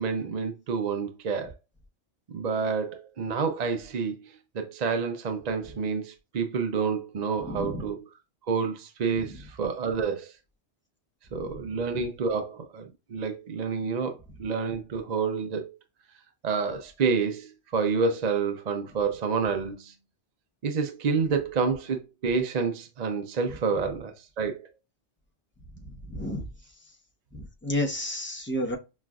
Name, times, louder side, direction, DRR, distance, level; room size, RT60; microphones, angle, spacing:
voice 1, 0.0-1.5 2.3-8.0 8.5-10.3 11.3-15.7 16.4-19.9 20.6-24.7, right 5 dB, 45° right, 0.6 m, -29 dB
voice 2, 7.4-7.9 9.2-9.4 11.3-11.6 25.8-26.5 27.3-28.8, left 1 dB, 10° left, 0.7 m, -32 dB
6.1 x 2.5 x 2.3 m
omnidirectional pair, 1.2 m